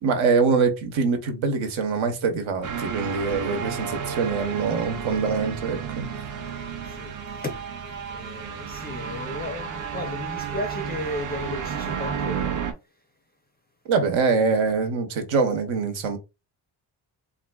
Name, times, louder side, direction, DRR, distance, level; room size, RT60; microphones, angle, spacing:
voice 1, 0.0-6.1 13.9-16.2, right 5 dB, 75° right, 0.9 m, -24 dB
sound 1, 2.6-12.7, right 7 dB, 40° right, 0.5 m, -32 dB
voice 2, 6.4-12.7, left 1 dB, 20° left, 0.4 m, -35 dB
3.9 x 2.5 x 2.2 m
wide cardioid pair, 155°, 47 cm